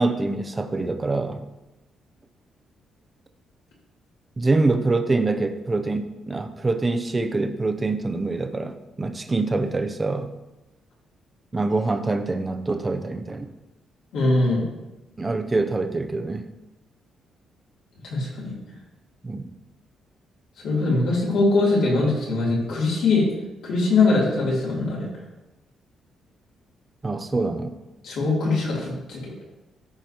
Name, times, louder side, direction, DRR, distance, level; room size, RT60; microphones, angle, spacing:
voice 1, 0.0-1.5 4.4-10.3 11.5-13.5 15.2-16.5 19.2-19.6 27.0-27.8, right 3 dB, 15° right, 8 dB, 0.5 m, -25 dB
voice 2, 14.1-14.6 18.1-18.5 20.6-23.3 23.6-25.1 28.0-29.3, left 3 dB, 75° left, -5 dB, 3.0 m, -22 dB
14.5 x 5.0 x 2.9 m, 1.0 s
cardioid pair, 175°, 0 cm